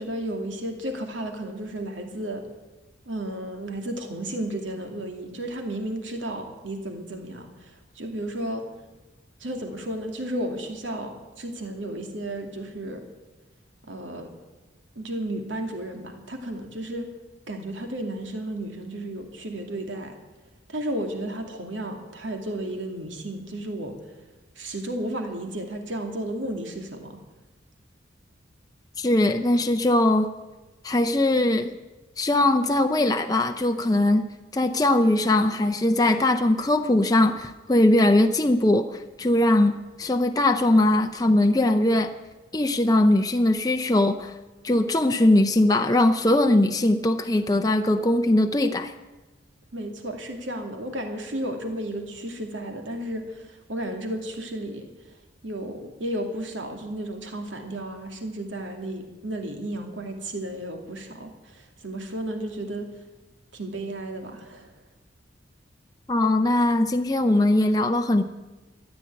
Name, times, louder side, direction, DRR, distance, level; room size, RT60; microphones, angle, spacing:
voice 1, 0.0-2.5 3.1-8.6 9.4-13.1 13.8-14.3 15.0-17.1 17.5-20.1 20.7-24.0 24.6-27.2 49.7-54.9 55.4-62.9 63.5-64.7, right 1 dB, 75° right, 4 dB, 2.5 m, -33 dB
voice 2, 29.0-30.3 30.8-31.8 32.2-34.2 34.5-39.7 40.0-42.1 42.5-44.3 44.6-48.9 66.1-68.2, left 1 dB, 20° left, 5 dB, 0.6 m, -21 dB
14.0 x 9.7 x 9.5 m, 1.1 s
head